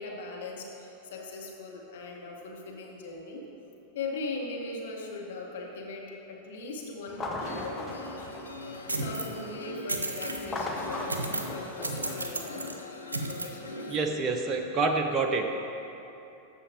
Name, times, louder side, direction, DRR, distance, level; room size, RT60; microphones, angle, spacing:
voice 1, 0.0-3.5 3.9-7.9 8.6-12.7 13.3-13.9, left 3 dB, 60° left, -1 dB, 1.3 m, -39 dB
sound 1, 7.1-9.3 10.3-12.9, left 2 dB, 10° left, 0.8 m, -38 dB
sound 2, 7.4-14.0, left 3 dB, 75° left, 0.7 m, -42 dB
sound 3, 8.9-9.4 9.9-10.4 11.1-11.6 11.8-12.8 13.1-13.5, right 2 dB, 80° right, 0.5 m, -33 dB
voice 2, 13.9-15.7, right 3 dB, 25° right, 4 dB, 0.7 m, -28 dB
14.5 x 5.6 x 3.0 m, 2.9 s
figure-of-eight pair, 90°, 0 cm